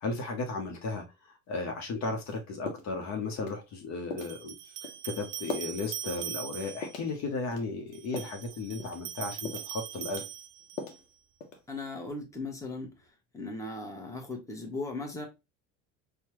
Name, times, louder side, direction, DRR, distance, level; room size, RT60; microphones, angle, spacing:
voice 1, 0.0-1.0 1.5-4.5 5.0-10.2, left 3 dB, 45° left, 1.0 m, -35 dB
sound 1, 2.2-2.4 2.7-3.0 3.4-3.6 4.1-4.4 4.8-5.0 5.5-5.8 6.2-6.3 6.8-7.1 7.5-8.4 8.8-9.1 9.4-9.8 10.1-11.0 11.4-11.8, left 4 dB, 85° left, 0.9 m, -40 dB
sound 2, 4.2-7.0 7.9-11.0, right 12 dB, 55° right, 0.5 m, -41 dB
voice 2, 11.7-15.3, left 2 dB, 10° left, 1.2 m, -38 dB
4.4 x 2.3 x 2.8 m
hypercardioid pair, 70°, 38 cm